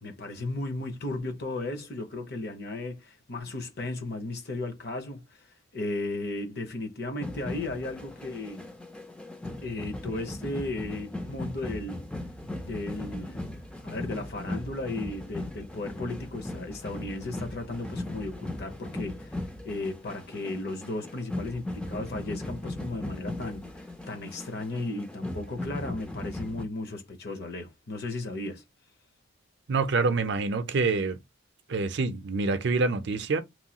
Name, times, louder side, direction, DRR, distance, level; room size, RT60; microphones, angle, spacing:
voice 1, 0.0-8.7 9.6-12.1 12.6-28.6, left 2 dB, 50° left, 0.7 m, -35 dB
sound 1, 7.2-26.7, left 1 dB, 5° left, 0.3 m, -38 dB
voice 2, 29.7-31.2 31.7-33.4, right 3 dB, 55° right, 0.5 m, -26 dB
3.0 x 2.3 x 2.8 m
head